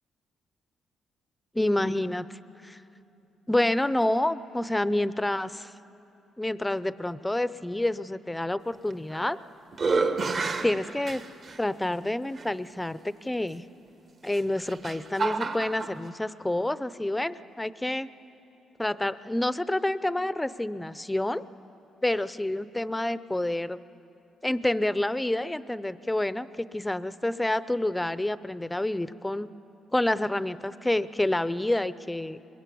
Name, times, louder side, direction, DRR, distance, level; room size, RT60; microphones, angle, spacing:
voice 1, 1.5-2.3 2.6-2.8 3.5-5.7 6.4-9.4 10.6-11.2 11.6-13.6 14.2-18.1 18.8-21.4 22.0-23.8 24.4-29.5 29.9-32.4, left 1 dB, 10° left, 15 dB, 0.6 m, -28 dB
sound 1, 8.9-9.4 9.7-11.6 12.4-12.5 14.2-15.9, right 4 dB, 45° right, 1.3 m, -29 dB
22.5 x 22.0 x 8.5 m, 2.8 s
cardioid pair, 90°, 0 cm